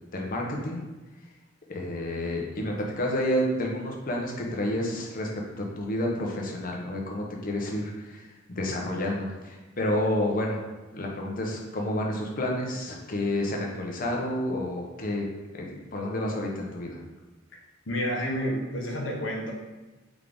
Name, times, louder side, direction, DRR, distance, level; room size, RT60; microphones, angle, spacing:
voice 1, 0.1-0.8 1.7-5.3 5.6-10.6 10.9-15.3 15.5-17.0, left 1 dB, 45° left, 0 dB, 0.8 m, -30 dB
voice 2, 17.9-19.5, equal, 70° left, -1 dB, 1.0 m, -29 dB
3.7 x 3.6 x 3.4 m, 1.1 s
head